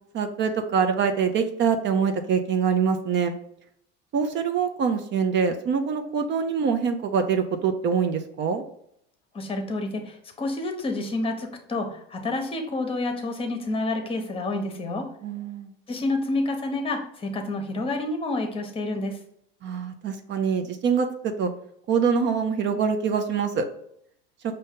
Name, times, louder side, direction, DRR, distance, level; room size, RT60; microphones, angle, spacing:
voice 1, 0.1-3.4 4.1-8.6 15.2-15.7 19.6-21.5 21.9-23.7, right 6 dB, 40° right, 6 dB, 0.5 m, -24 dB
voice 2, 9.3-15.0 15.9-19.2, left 2 dB, 20° left, 5 dB, 0.9 m, -29 dB
5.3 x 2.7 x 3.6 m, 0.70 s
supercardioid pair, 120°, 30 cm